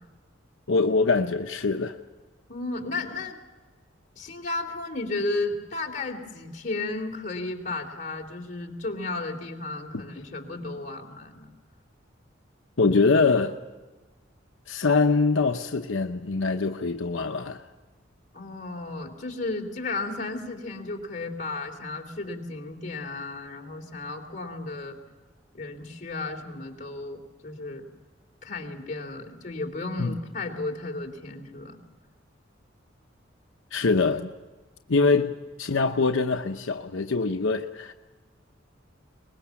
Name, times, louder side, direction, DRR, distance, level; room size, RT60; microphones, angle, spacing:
voice 1, 0.7-2.0 12.8-13.6 14.7-17.6 30.0-30.1 33.7-34.3 34.9-35.3 35.6-37.9, left 4 dB, 90° left, 0.9 m, -23 dB
voice 2, 2.5-3.4 4.2-11.5 18.3-25.0 25.5-27.8 28.4-31.8, left 2 dB, 40° left, 3.2 m, -34 dB
23.5 x 20.5 x 7.1 m
head